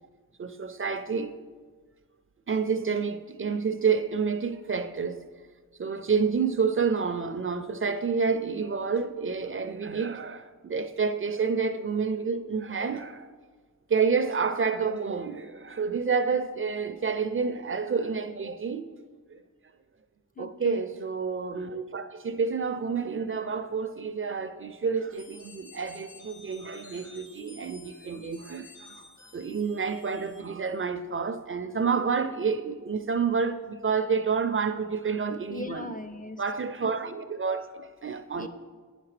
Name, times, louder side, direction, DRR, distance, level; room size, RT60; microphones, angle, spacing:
voice 1, 0.4-1.4 2.5-5.2 5.8-13.3 13.9-18.9 19.3-19.4 20.4-29.1 29.3-36.0 36.4-38.5, right 5 dB, 40° right, 0.4 m, -29 dB
voice 2, 20.4-20.8 35.5-36.4 38.4-38.5, left 2 dB, 25° left, 0.4 m, -39 dB
sound 1, 25.1-30.8, left 4 dB, 60° left, 1.4 m, -52 dB
9.2 x 5.8 x 3.2 m
wide cardioid pair, 70°, 34 cm